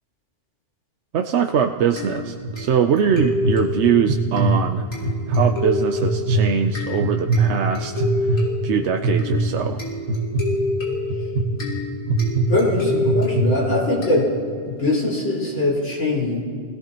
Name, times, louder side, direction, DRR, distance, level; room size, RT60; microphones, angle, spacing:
voice 1, 1.1-4.8 5.3-9.8, right 7 dB, 65° right, 5 dB, 0.9 m, -22 dB
sound 1, 2.0-14.7, left 2 dB, 90° left, 4.0 m, -28 dB
sound 2, 2.2-2.5 3.1-3.5 4.1-4.5 5.0-5.5 6.0-6.4 7.0-7.4 8.0-8.4 9.0-9.4 10.1-10.4 11.1-11.4 12.1-12.4 13.0-13.4, right 2 dB, 50° right, 1.6 m, -20 dB
voice 2, 12.5-14.3 14.6-16.4, left 2 dB, 65° left, -5 dB, 5.0 m, -22 dB
27.5 x 17.5 x 3.0 m, 2.2 s
omnidirectional pair, 1.3 m